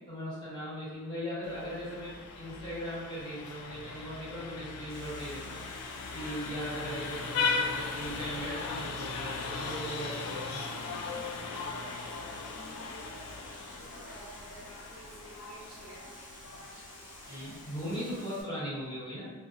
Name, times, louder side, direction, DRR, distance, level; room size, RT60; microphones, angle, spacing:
voice 1, 0.1-5.6 6.1-10.7 17.3-19.3, equal, 20° left, -9 dB, 0.8 m, -39 dB
Vehicle horn car horn honking, 1.4-18.3, left 4 dB, 80° left, 0.3 m, -38 dB
sound 1, 4.9-18.4, equal, 10° right, 0.4 m, -52 dB
voice 2, 10.7-16.1 17.3-18.8, equal, 70° right, -7 dB, 0.9 m, -52 dB
2.5 x 2.2 x 2.4 m, 1.2 s
head